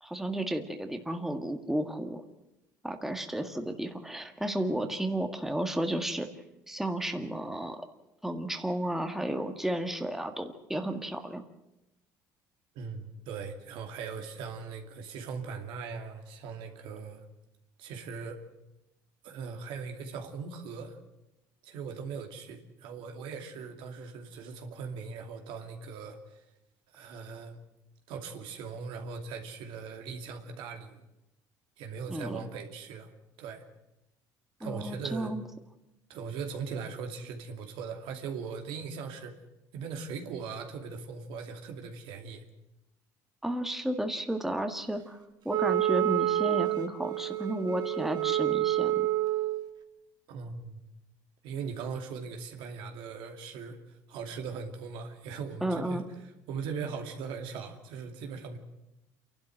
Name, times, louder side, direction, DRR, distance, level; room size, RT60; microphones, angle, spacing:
voice 1, 0.0-2.2 2.8-6.3 6.7-7.9 8.2-11.4 32.1-32.4 34.6-35.4 43.4-45.2 45.5-49.1 55.6-56.0, right 1 dB, 5° right, 5 dB, 1.8 m, -32 dB
voice 2, 12.7-17.2 17.8-18.4 19.2-21.0 21.6-26.4 26.9-27.6 28.1-31.0 31.8-33.1 33.4-33.6 34.6-35.3 36.1-39.4 39.7-42.4 50.3-50.8 51.4-58.6, right 5 dB, 70° right, 4 dB, 2.6 m, -40 dB
Wind instrument woodwind instrument, 45.5-49.6, right 14 dB, 55° right, 1.7 m, -28 dB
28.0 x 12.0 x 7.9 m, 0.93 s
supercardioid pair, 85°, 9 cm